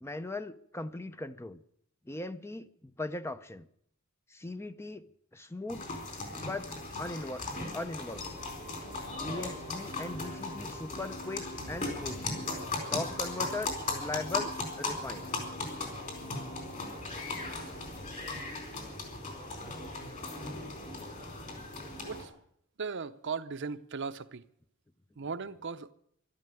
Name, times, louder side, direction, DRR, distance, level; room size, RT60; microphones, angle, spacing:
voice 1, 0.0-1.6 2.1-3.7 4.3-5.0 5.3-5.9 6.3-6.7 7.0-7.4 7.7-8.4 9.1-12.3 12.9-14.5 14.8-15.3, left 2 dB, 10° left, 0.6 m, -39 dB
sound 1, 5.7-22.2, left 3 dB, 40° left, 4.3 m, -38 dB
sound 2, 8.2-19.1, left 1 dB, 75° left, 2.0 m, -49 dB
voice 2, 22.8-24.4 25.2-25.9, right 5 dB, 60° right, 0.7 m, -37 dB
12.5 x 12.5 x 9.1 m
head